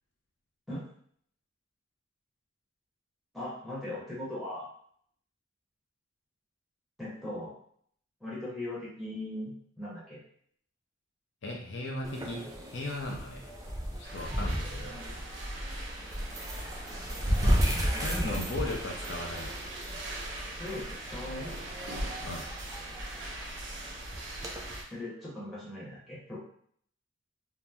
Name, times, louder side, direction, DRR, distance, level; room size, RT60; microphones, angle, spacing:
voice 1, 3.3-4.7 7.0-7.5 8.2-10.2 16.2-16.3 17.6-18.5 20.6-21.5 24.9-26.4, left 1 dB, ahead, -8 dB, 1.0 m, -39 dB
voice 2, 11.4-13.4 14.0-15.0 17.4-17.7 18.0-19.6 22.2-22.5, left 2 dB, 60° left, -1 dB, 0.5 m, -37 dB
sound 1, 12.0-24.8, equal, 20° right, 0.4 m, -34 dB
sound 2, 14.0-24.8, right 1 dB, 65° right, 0.6 m, -40 dB
2.7 x 2.0 x 3.4 m, 0.63 s
head